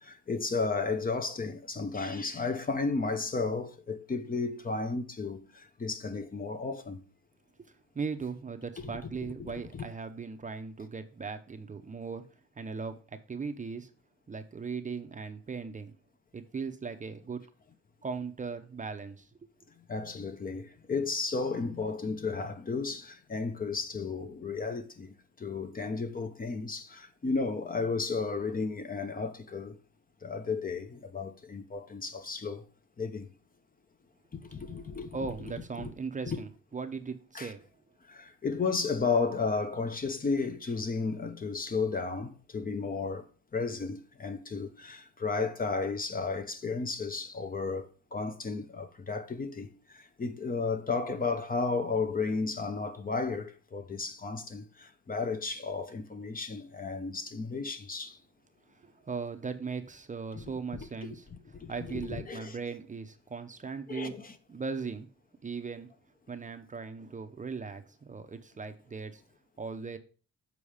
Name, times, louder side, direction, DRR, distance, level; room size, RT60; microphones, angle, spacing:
voice 1, 0.0-7.0 8.8-8.9 9.2-9.9 19.9-29.8 30.2-32.6 33.0-33.3 34.3-35.2 35.4-35.9 36.3-36.4 37.3-37.5 38.1-43.3 43.5-58.2 60.3-60.4 60.7-60.9 61.5-62.6 63.9-64.3, left 4 dB, 30° left, 0.8 m, -33 dB
voice 2, 7.9-12.2 12.6-13.9 14.3-15.9 16.3-17.4 18.0-19.3 35.1-37.6 58.8-61.3 61.7-64.2 64.5-65.1 65.4-65.9 66.3-69.2 69.6-70.0, right 5 dB, 25° right, 0.7 m, -38 dB
7.1 x 4.6 x 4.9 m
cardioid pair, 90°, 30 cm